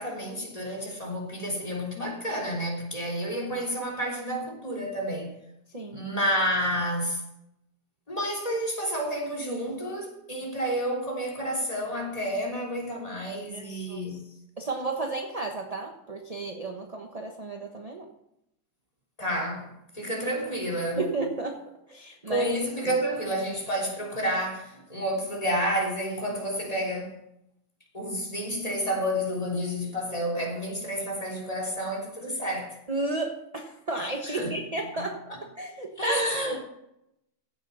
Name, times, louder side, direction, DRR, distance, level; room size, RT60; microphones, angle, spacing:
voice 1, 0.0-5.3 5.9-7.2 8.1-14.2 19.2-21.1 22.3-27.1 27.9-32.8 34.2-34.6 34.9-35.1 36.0-36.6, equal, 20° left, 3.4 m, -30 dB
voice 2, 5.7-6.0 13.5-14.2 14.6-18.1 21.0-22.5 22.8-23.0 32.9-35.2 35.6-36.6, right 2 dB, 25° right, 1.1 m, -33 dB
15.5 x 7.9 x 5.6 m
omnidirectional pair, 1.9 m